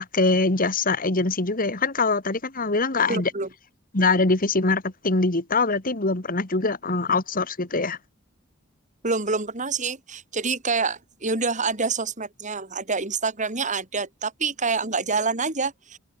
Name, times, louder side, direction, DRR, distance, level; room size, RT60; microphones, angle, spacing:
voice 1, 0.0-3.3 3.9-8.0, left 3 dB, 45° left, 2.0 m, -23 dB
voice 2, 3.1-3.5 9.0-16.0, right 4 dB, 35° right, 3.2 m, -27 dB
head